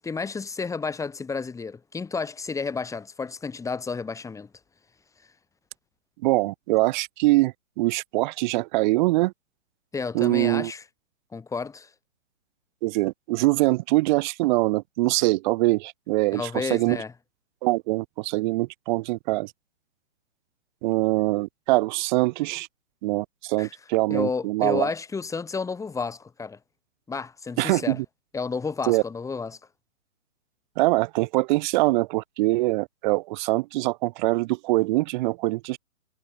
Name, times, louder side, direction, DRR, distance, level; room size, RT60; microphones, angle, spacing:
voice 1, 0.0-4.5 9.9-10.8 11.3-11.9 16.3-17.1 23.6-23.7 24.1-26.6 27.1-28.0 28.3-29.6, left 4 dB, 10° left, 5.6 m, -31 dB
voice 2, 6.2-9.3 10.1-10.7 12.8-17.0 17.6-19.5 20.8-22.7 23.0-24.9 27.6-28.1 28.9-29.0 30.8-35.8, right 21 dB, 35° right, 5.8 m, -23 dB
figure-of-eight pair, 125°, 40 cm